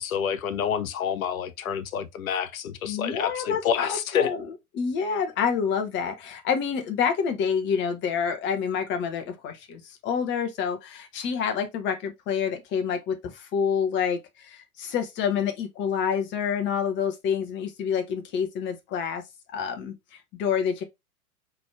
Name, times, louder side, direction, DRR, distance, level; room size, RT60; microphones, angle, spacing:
voice 1, 0.0-4.3, left 8 dB, 60° left, 0.8 m, -28 dB
voice 2, 2.9-4.5 4.7-19.2 19.5-20.8, left 7 dB, 25° left, 0.9 m, -28 dB
4.0 x 3.3 x 3.4 m
figure-of-eight pair, 105°, 46 cm